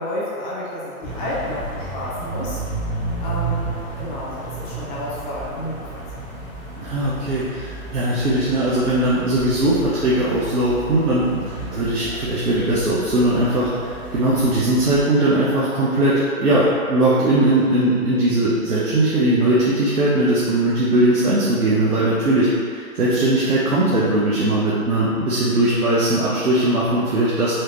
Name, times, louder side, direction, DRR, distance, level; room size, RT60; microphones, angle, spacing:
voice 1, 0.0-2.6 3.2-6.2, left 1 dB, 30° left, -8 dB, 1.0 m, -30 dB
sound 1, 1.0-15.0, right 2 dB, 10° left, 1.3 m, -33 dB
voice 2, 6.8-27.6, right 1 dB, 85° right, -8 dB, 1.0 m, -19 dB
4.8 x 3.0 x 3.0 m, 2.3 s
hypercardioid pair, 135°, 44 cm